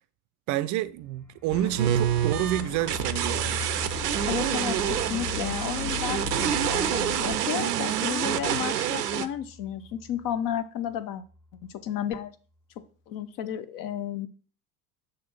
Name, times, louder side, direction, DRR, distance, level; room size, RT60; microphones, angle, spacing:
voice 1, 0.5-3.6, right 14 dB, 40° right, 0.5 m, -29 dB
sound 1, 0.9-10.6 10.9-11.0 11.3-11.7, equal, 5° left, 0.9 m, -43 dB
sound 2, 1.5-7.4, left 9 dB, 75° left, 0.6 m, -38 dB
sound 3, 1.8-9.3, right 10 dB, 85° right, 0.6 m, -27 dB
voice 2, 4.3-11.2 11.7-12.3 13.1-14.3, left 9 dB, 45° left, 0.9 m, -32 dB
6.7 x 3.8 x 5.6 m
figure-of-eight pair, 70°, 46 cm